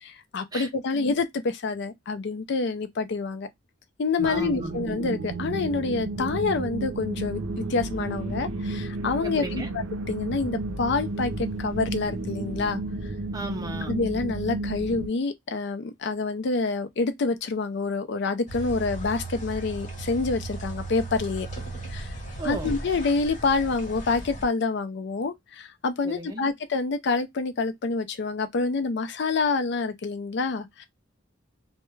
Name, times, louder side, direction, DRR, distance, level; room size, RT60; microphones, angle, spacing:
voice 1, 0.3-3.5 4.0-12.8 13.9-21.5 21.9-22.1 22.4-30.9, left 4 dB, 60° left, 0.4 m, -27 dB
voice 2, 4.2-4.7 9.2-9.7 13.3-13.9 22.4-22.7 26.0-26.5, right 2 dB, 20° right, 0.5 m, -35 dB
sound 1, 4.2-15.1, right 2 dB, 85° right, 0.5 m, -32 dB
sound 2, 18.5-24.4, right 2 dB, 40° left, 0.9 m, -36 dB
2.2 x 2.1 x 3.0 m
head